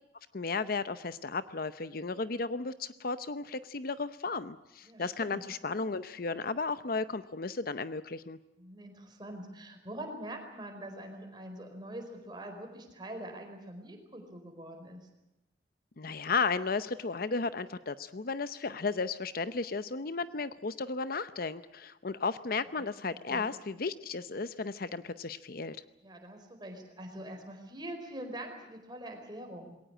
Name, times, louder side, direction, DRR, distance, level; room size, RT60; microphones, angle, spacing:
voice 1, 0.3-8.4 16.0-25.8, left 4 dB, 55° left, 13 dB, 0.7 m, -34 dB
voice 2, 4.8-5.4 8.6-15.0 22.8-23.0 23.3-23.5 26.0-29.7, right 1 dB, 25° right, 4 dB, 4.7 m, -44 dB
21.0 x 18.5 x 9.9 m, 0.93 s
head